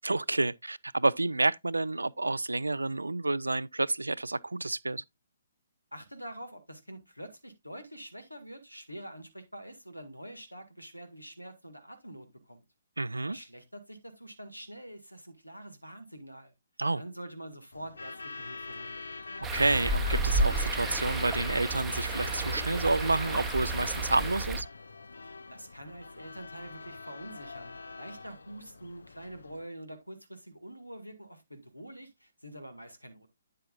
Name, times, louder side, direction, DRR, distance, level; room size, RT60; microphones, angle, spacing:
voice 1, 0.0-5.0 13.0-13.4 16.8-17.0 19.4-24.7, right 2 dB, 75° right, 0.4 m, -29 dB
voice 2, 5.9-12.6 13.3-16.5 16.9-19.0 25.5-33.3, right 1 dB, 90° left, 1.9 m, -46 dB
Truck / Alarm, 17.7-29.7, left 3 dB, 65° left, 0.6 m, -43 dB
sound 1, 19.4-24.6, right 2 dB, 10° right, 0.8 m, -31 dB
9.4 x 7.6 x 2.4 m
figure-of-eight pair, 130°, 0 cm